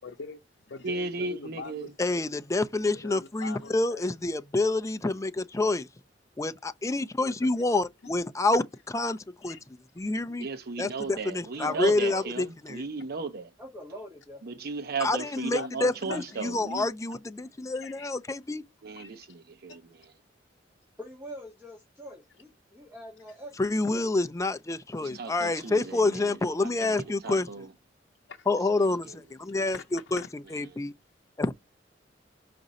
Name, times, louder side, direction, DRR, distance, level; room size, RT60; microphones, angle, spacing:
voice 1, 0.0-2.3 2.9-4.1 7.2-7.8 9.4-9.6 10.0-10.1 11.0-11.1 15.5-16.2 17.7-18.1 19.0-19.3 19.7-20.1 25.1-25.3 28.3-28.5 29.7-30.6, left 4 dB, 75° left, 0.7 m, -43 dB
voice 2, 0.8-1.9 10.4-13.5 14.4-16.9 18.8-19.8 25.0-26.9 27.2-27.7 28.9-29.0, right 4 dB, 55° right, 0.6 m, -35 dB
voice 3, 2.0-5.9 6.4-9.6 10.0-10.5 10.8-12.8 15.0-18.6 23.6-27.5 28.5-30.2 30.5-30.9 31.4-31.5, left 2 dB, 15° left, 0.4 m, -28 dB
voice 4, 11.5-12.4 13.6-14.7 21.0-23.6 23.9-24.1, equal, 15° right, 1.5 m, -44 dB
5.2 x 2.5 x 4.0 m
head